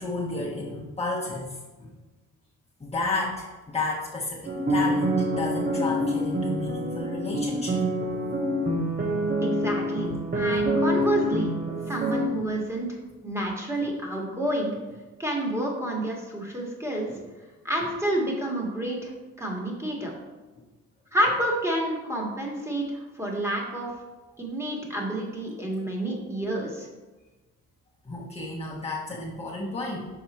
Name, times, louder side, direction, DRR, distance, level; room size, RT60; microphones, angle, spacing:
voice 1, 0.0-1.9 2.8-7.8 10.1-10.2 11.7-11.8 12.5-12.6 13.8-13.9 17.1-17.2 28.0-30.1, left 2 dB, 20° left, -5 dB, 1.1 m, -32 dB
sound 1, 4.5-12.3, equal, 30° right, 1.2 m, -26 dB
voice 2, 9.4-11.5 11.9-12.9 13.2-14.7 15.2-17.0 17.6-19.1 19.4-20.1 21.1-23.9 24.4-26.9, right 1 dB, 10° right, -1 dB, 1.6 m, -29 dB
5.9 x 4.3 x 4.2 m, 1.2 s
cardioid pair, 90°, 30 cm